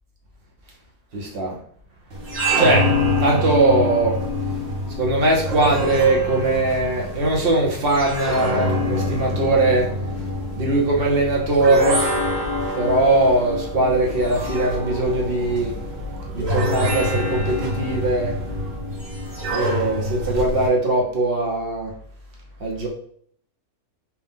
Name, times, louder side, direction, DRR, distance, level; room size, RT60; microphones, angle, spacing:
voice 1, 1.1-1.5 2.6-2.9 3.2-4.2 5.0-9.9 10.6-12.0 12.7-15.7 16.3-18.3 19.5-21.9 22.6-22.9, right 2 dB, 45° right, -2 dB, 1.0 m, -20 dB
sound 1, 1.7-18.8, equal, 90° right, 1.3 m, -38 dB
sound 2, 2.1-20.7, left 1 dB, 65° right, 1.5 m, -26 dB
4.5 x 2.3 x 3.6 m, 0.63 s
omnidirectional pair, 1.5 m